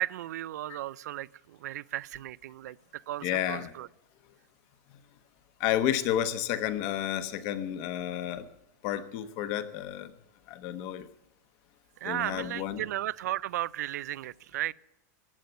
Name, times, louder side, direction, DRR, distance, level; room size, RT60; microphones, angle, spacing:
voice 1, 0.0-3.9 12.0-14.7, right 14 dB, 75° right, 0.4 m, -35 dB
voice 2, 3.2-3.7 5.6-8.4 8.8-10.1 10.5-11.1 12.0-12.8, left 11 dB, 35° left, 1.0 m, -31 dB
15.0 x 9.5 x 7.8 m
supercardioid pair, 175°, 9 cm